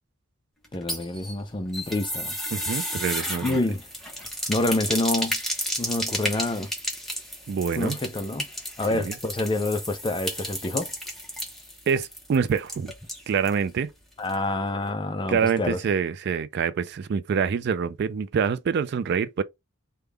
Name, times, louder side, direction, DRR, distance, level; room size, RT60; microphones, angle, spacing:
sound 1, 0.6-13.6 13.9-14.0 14.3-14.4, equal, ahead, 0.8 m, -33 dB
voice 1, 0.7-2.3 3.4-3.9 4.5-5.4 5.8-6.7 7.8-8.5 8.8-10.9 14.2-15.8, left 2 dB, 25° left, 0.4 m, -27 dB
voice 2, 2.5-3.6 7.5-8.0 8.9-9.1 11.9-12.9 13.3-13.9 15.3-19.4, right 6 dB, 55° right, 0.3 m, -26 dB
3.4 x 2.2 x 3.3 m
head